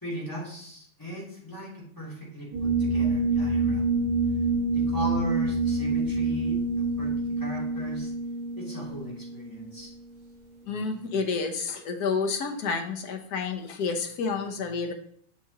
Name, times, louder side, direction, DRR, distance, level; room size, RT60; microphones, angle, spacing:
voice 1, 0.0-4.0 4.7-8.1 8.6-9.9, equal, 10° left, -6 dB, 3.0 m, -38 dB
sound 1, 2.5-10.0, right 3 dB, 80° right, 3.1 m, -27 dB
voice 2, 10.7-14.9, left 4 dB, 60° left, 4 dB, 1.3 m, -29 dB
7.4 x 6.9 x 2.9 m, 0.62 s
omnidirectional pair, 2.0 m